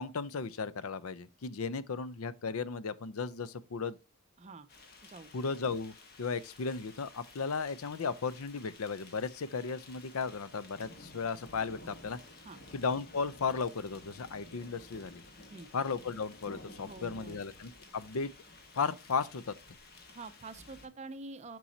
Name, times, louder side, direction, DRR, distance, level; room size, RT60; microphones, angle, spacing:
voice 1, 0.0-4.0 5.3-12.2 12.7-15.2 15.7-18.3 18.7-19.6, left 5 dB, 85° left, 0.6 m, -35 dB
sound 1, 4.7-20.9, left 2 dB, 45° left, 1.4 m, -53 dB
voice 2, 16.8-17.4 20.1-21.6, right 3 dB, 30° right, 0.5 m, -46 dB
7.1 x 6.1 x 2.7 m
head